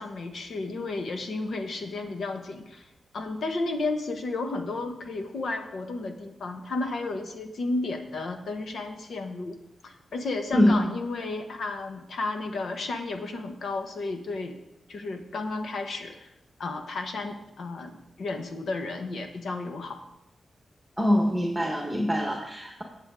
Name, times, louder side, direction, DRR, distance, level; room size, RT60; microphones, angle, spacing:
voice 1, 0.0-2.9 3.1-9.6 9.8-14.6 14.9-16.3 16.6-20.0, left 3 dB, 75° left, 5 dB, 1.4 m, -33 dB
voice 2, 21.0-22.8, left 1 dB, 5° right, 1 dB, 1.4 m, -23 dB
19.0 x 7.4 x 3.8 m, 0.88 s
wide cardioid pair, 110°, 0 cm